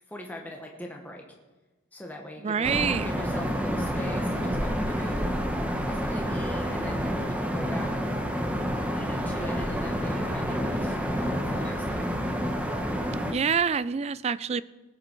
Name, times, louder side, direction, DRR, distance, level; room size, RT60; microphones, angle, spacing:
voice 1, 0.1-1.2 1.9-5.3 5.9-8.1 8.9-12.1, equal, 10° left, 1 dB, 1.2 m, -41 dB
voice 2, 2.4-3.1 13.3-14.6, right 6 dB, 30° right, 17 dB, 0.3 m, -26 dB
sound 1, 2.6-13.3, equal, 5° right, 1.0 m, -29 dB
19.0 x 8.4 x 4.6 m, 1.2 s
head